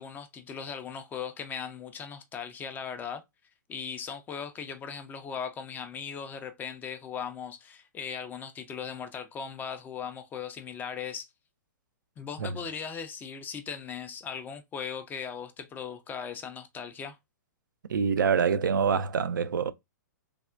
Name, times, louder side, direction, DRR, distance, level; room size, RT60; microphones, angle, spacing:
voice 1, 0.0-3.2 3.7-11.3 12.2-17.2, left 7 dB, 15° left, 0.4 m, -38 dB
voice 2, 17.9-19.7, right 6 dB, 80° right, 0.4 m, -25 dB
3.3 x 2.1 x 2.3 m
hypercardioid pair, 120°, 10 cm